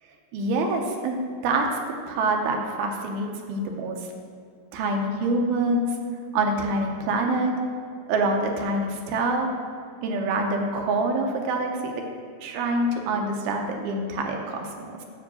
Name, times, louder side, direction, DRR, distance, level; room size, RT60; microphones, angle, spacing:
voice 1, 0.3-1.2 1.4-1.7 2.1-4.0 4.7-5.9 6.3-7.5 8.1-9.5 10.0-12.0 12.4-14.7, right 2 dB, 80° right, 2 dB, 2.5 m, -25 dB
9.1 x 3.8 x 6.8 m, 2.3 s
omnidirectional pair, 4.7 m